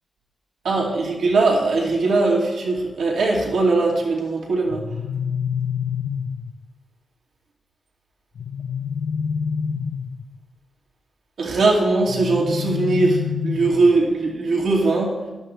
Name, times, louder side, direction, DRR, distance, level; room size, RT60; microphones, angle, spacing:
voice 1, 0.6-4.8 11.4-15.1, right 3 dB, 85° right, -2 dB, 2.6 m, -20 dB
sound 1, 4.7-6.6 8.4-10.3 12.1-14.0, left 7 dB, 85° left, 0.5 m, -27 dB
14.5 x 12.0 x 3.3 m, 1.2 s
wide cardioid pair, 130°, 0 cm